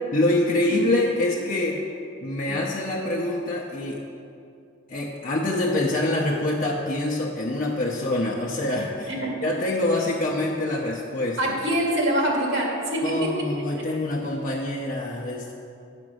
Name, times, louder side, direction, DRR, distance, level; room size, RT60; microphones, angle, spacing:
voice 1, 0.1-1.8 2.2-4.0 4.9-9.1 9.4-11.4 13.0-15.5, left 1 dB, 40° left, -3 dB, 0.7 m, -25 dB
voice 2, 11.4-13.5, right 1 dB, 65° right, -2 dB, 2.0 m, -24 dB
8.8 x 5.2 x 6.2 m, 2.5 s
head